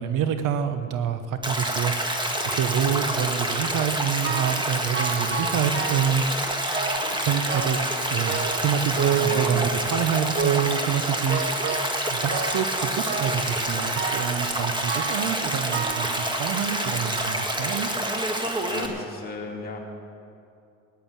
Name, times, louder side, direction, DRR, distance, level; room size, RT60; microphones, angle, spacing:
voice 1, 0.0-2.2 2.5-6.2 7.2-7.8 8.1-11.6 12.1-17.9, right 8 dB, 60° right, 9 dB, 0.9 m, -27 dB
Stream, 1.4-18.9, right 1 dB, 15° right, 1.7 m, -27 dB
sound 1, 4.2-4.7 4.9-6.2 6.7-7.2 7.5-8.0 8.3-9.9 10.4-10.8 11.3-12.0 12.3-12.7 13.1-13.5 14.0-14.4 14.9-15.3 15.7-16.8 17.4-17.5 18.3-18.4 18.9-19.0, right 6 dB, 30° right, 1.0 m, -30 dB
voice 2, 18.6-19.8, left 3 dB, 25° left, -1 dB, 2.8 m, -35 dB
14.5 x 9.1 x 7.4 m, 2.6 s
supercardioid pair, 85°, 35 cm